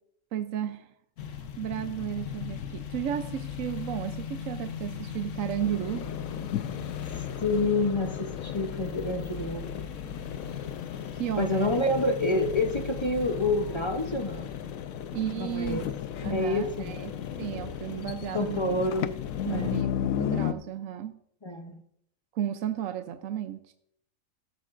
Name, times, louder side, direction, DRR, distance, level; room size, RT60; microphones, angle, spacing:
voice 1, 0.3-0.9 1.6-6.1 11.1-11.8 15.1-15.8 16.2-18.8 19.4-21.1 22.3-23.7, right 10 dB, 75° right, 9 dB, 1.0 m, -33 dB
sound 1, 1.2-19.8, left 8 dB, 70° left, 1.1 m, -39 dB
sound 2, 4.9-14.5, equal, 15° right, 4.5 m, -53 dB
sound 3, 5.6-20.5, left 11 dB, 90° left, 1.0 m, -36 dB
voice 2, 7.4-9.7 11.4-14.5 15.4-15.9 16.3-17.0 18.3-19.1 19.5-19.8 21.4-21.8, left 2 dB, 30° left, 6 dB, 0.6 m, -28 dB
14.0 x 12.5 x 2.5 m, 0.73 s
omnidirectional pair, 1.4 m